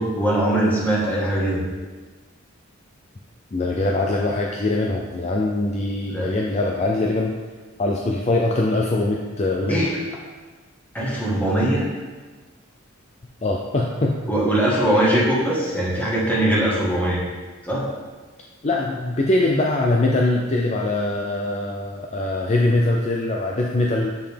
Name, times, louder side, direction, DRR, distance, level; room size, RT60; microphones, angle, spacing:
voice 1, 0.0-1.6 6.1-6.3 9.7-10.0 10.9-11.9 14.3-17.2 17.6-17.8, right 1 dB, 10° left, -6 dB, 1.4 m, -21 dB
voice 2, 3.5-7.4 7.8-9.8 13.4-14.2 18.6-24.3, left 2 dB, 30° left, -1 dB, 0.4 m, -22 dB
6.7 x 5.7 x 3.4 m, 1.3 s
head